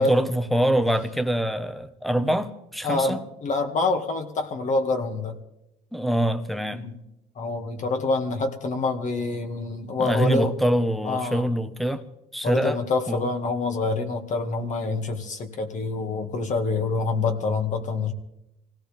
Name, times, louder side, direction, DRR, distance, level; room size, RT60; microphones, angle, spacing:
voice 1, 0.0-3.2 5.9-6.8 10.0-12.1 12.3-12.8 13.1-13.3, right 1 dB, ahead, 1.1 m, -24 dB
voice 2, 2.8-5.4 6.7-7.0 7.4-10.5 11.0-11.5 12.4-18.1, left 3 dB, 45° left, 2.0 m, -26 dB
24.5 x 17.0 x 3.5 m
cardioid pair, 110°, 17 cm